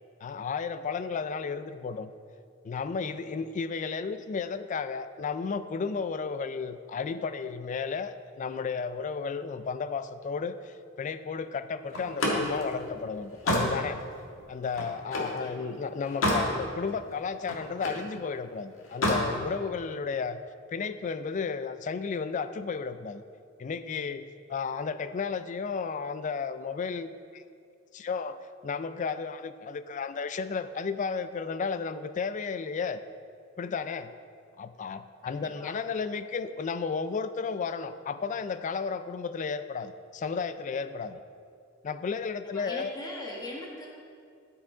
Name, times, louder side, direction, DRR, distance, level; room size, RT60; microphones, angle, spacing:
voice 1, 0.2-2.1 2.6-14.0 14.5-20.4 20.7-23.2 23.6-24.2 24.5-27.4 27.9-28.4 28.6-33.0 33.6-34.1 34.6-41.2 41.8-42.9, left 5 dB, 40° left, 12 dB, 0.3 m, -33 dB
Slam, 11.9-15.4 15.8-16.5 16.9-18.1 18.8-19.3, left 1 dB, 80° left, 1.5 m, -29 dB
voice 2, 15.4-15.7 35.2-35.7 42.4-43.9, left 1 dB, 20° left, -3 dB, 1.4 m, -41 dB
12.5 x 5.6 x 3.7 m, 2.3 s
head